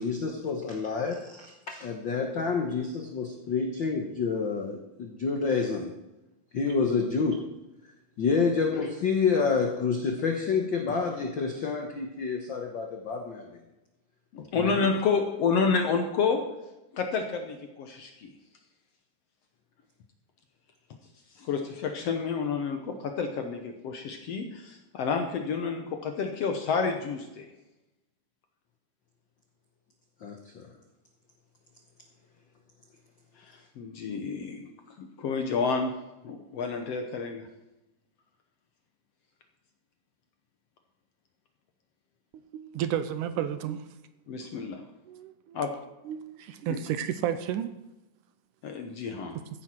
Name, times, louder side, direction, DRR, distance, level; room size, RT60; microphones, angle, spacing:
voice 1, 0.0-5.9 6.5-7.4 8.2-13.5 14.5-14.7 30.2-30.7, left 5 dB, 90° left, 1.0 m, -28 dB
voice 2, 14.3-16.4 16.9-18.3 21.3-27.5 33.4-34.7 35.0-36.0 36.2-37.5 44.3-44.8 45.5-45.7 46.7-46.8 48.6-49.4, left 5 dB, 65° left, 1.6 m, -29 dB
voice 3, 42.5-43.9 45.1-45.6 46.1-47.7, right 10 dB, 80° right, 2.1 m, -32 dB
14.5 x 10.5 x 4.5 m
omnidirectional pair, 3.9 m